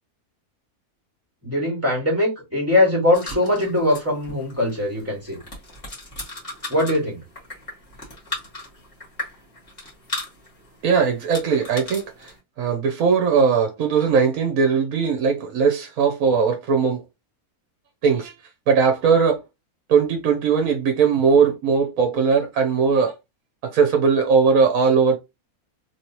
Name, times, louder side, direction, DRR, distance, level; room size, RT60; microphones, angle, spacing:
voice 1, 1.4-5.4 6.7-7.2, left 1 dB, 10° right, 1.7 m, -21 dB
sound 1, 3.1-12.4, left 2 dB, 25° left, 1.6 m, -37 dB
voice 2, 10.8-12.3 12.6-17.0 18.0-18.3 18.7-19.4 19.9-23.1 23.7-25.2, right 5 dB, 70° right, 1.1 m, -19 dB
3.2 x 3.0 x 2.8 m
omnidirectional pair, 1.6 m